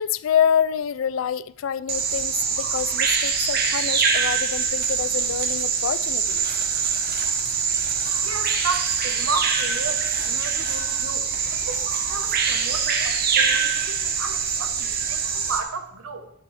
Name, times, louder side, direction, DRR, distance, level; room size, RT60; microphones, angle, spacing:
voice 1, 0.0-6.5, left 8 dB, 70° left, 0.3 m, -26 dB
Bird vocalization bird call bird song, 1.9-15.6, right 6 dB, 45° right, 1.0 m, -24 dB
voice 2, 7.7-16.3, right 4 dB, 90° right, 0.9 m, -33 dB
11.5 x 9.6 x 3.2 m
head